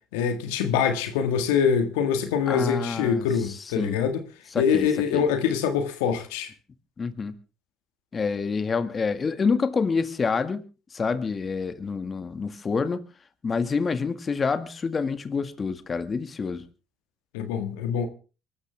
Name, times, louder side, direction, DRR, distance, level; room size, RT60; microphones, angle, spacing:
voice 1, 0.1-4.2 4.6-6.5 17.3-18.1, left 7 dB, 85° left, 1.8 m, -24 dB
voice 2, 2.5-4.0 4.5-4.9 5.1-5.2 7.0-7.3 8.1-10.6 10.9-13.0 13.4-16.6, left 5 dB, 35° left, 1.9 m, -27 dB
24.5 x 13.0 x 3.5 m
hypercardioid pair, 65°, 0 cm